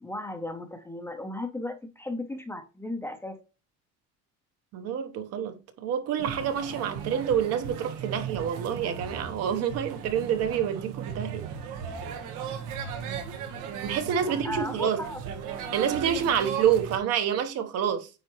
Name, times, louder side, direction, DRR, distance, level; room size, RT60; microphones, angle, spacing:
voice 1, 0.0-3.4 14.3-15.2, left 1 dB, 10° left, 0.6 m, -35 dB
voice 2, 4.7-11.5 13.8-15.0 15.7-18.1, right 8 dB, 55° right, 1.0 m, -28 dB
sound 1, 6.2-17.0, right 7 dB, 90° right, 1.3 m, -37 dB
9.1 x 4.2 x 3.0 m
cardioid pair, 160°, 31 cm